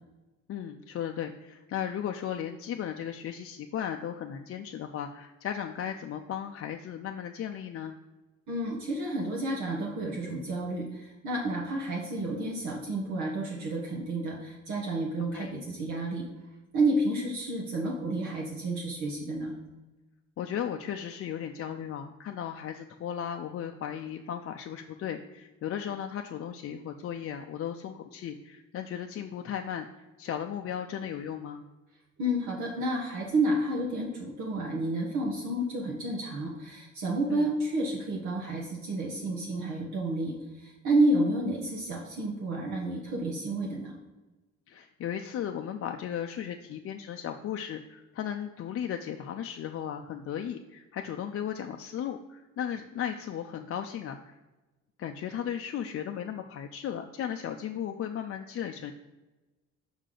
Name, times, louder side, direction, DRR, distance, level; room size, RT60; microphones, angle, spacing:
voice 1, 0.5-8.0 15.3-15.5 20.4-31.7 37.3-37.5 44.7-54.4 55.0-58.9, left 9 dB, 50° left, 4 dB, 0.4 m, -36 dB
voice 2, 8.5-16.2 16.7-19.5 32.2-43.9, right 1 dB, 75° right, -2 dB, 1.2 m, -30 dB
5.5 x 5.0 x 3.8 m, 1.1 s
cardioid pair, 90°, 30 cm